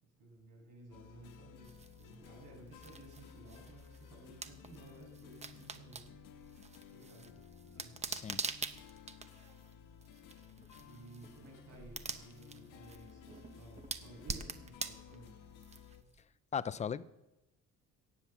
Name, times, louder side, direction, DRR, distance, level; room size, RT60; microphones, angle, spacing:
voice 1, 0.0-6.1 6.9-7.4 7.8-8.0 10.8-15.4, right 2 dB, 70° right, -1 dB, 6.6 m, -56 dB
sound 1, 0.9-16.0, left 7 dB, 75° left, 1.3 m, -56 dB
sound 2, 1.6-16.2, right 4 dB, 20° right, 0.7 m, -46 dB
voice 2, 8.1-8.4 16.5-17.0, left 7 dB, 20° left, 17 dB, 0.4 m, -37 dB
17.5 x 7.5 x 7.2 m, 0.96 s
cardioid pair, 140°, 33 cm